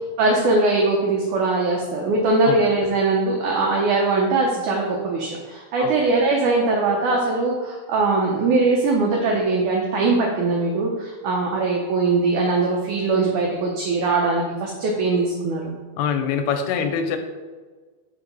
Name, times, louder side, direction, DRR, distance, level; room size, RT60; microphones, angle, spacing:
voice 1, 0.2-15.8, right 3 dB, 80° right, -1 dB, 1.8 m, -21 dB
voice 2, 16.0-17.2, left 7 dB, 85° left, 6 dB, 2.6 m, -24 dB
5.3 x 4.4 x 5.2 m, 1.4 s
omnidirectional pair, 4.4 m